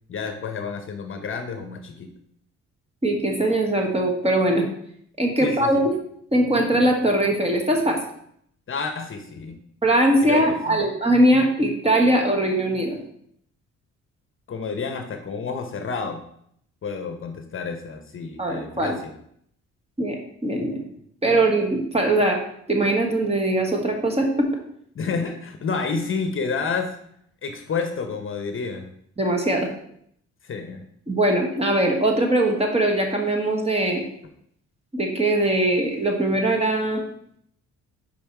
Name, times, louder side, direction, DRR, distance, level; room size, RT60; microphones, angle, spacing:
voice 1, 0.1-2.1 5.4-5.8 8.7-9.6 10.2-10.8 14.5-16.2 16.8-19.1 24.9-27.0 27.4-28.9 30.4-30.8, left 5 dB, 45° left, 6 dB, 0.9 m, -30 dB
voice 2, 3.0-4.7 5.2-5.9 6.3-8.0 9.8-13.0 18.4-19.0 20.0-20.2 20.4-20.8 21.2-22.4 22.7-24.5 29.2-29.7 31.1-34.0 34.9-37.0, right 1 dB, 20° right, 2 dB, 1.5 m, -21 dB
5.4 x 5.1 x 4.6 m, 0.69 s
cardioid pair, 90°, 30 cm